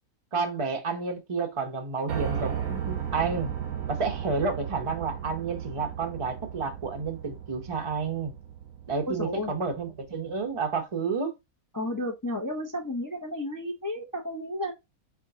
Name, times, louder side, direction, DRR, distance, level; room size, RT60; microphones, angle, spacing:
voice 1, 0.3-3.5 3.9-8.3 8.9-11.3, right 4 dB, 30° right, 0.6 m, -30 dB
Piano, 2.1-10.1, right 9 dB, 80° right, 1.3 m, -35 dB
voice 2, 9.1-9.5 11.7-14.7, left 1 dB, 20° left, 0.5 m, -32 dB
4.3 x 4.1 x 2.7 m
omnidirectional pair, 1.5 m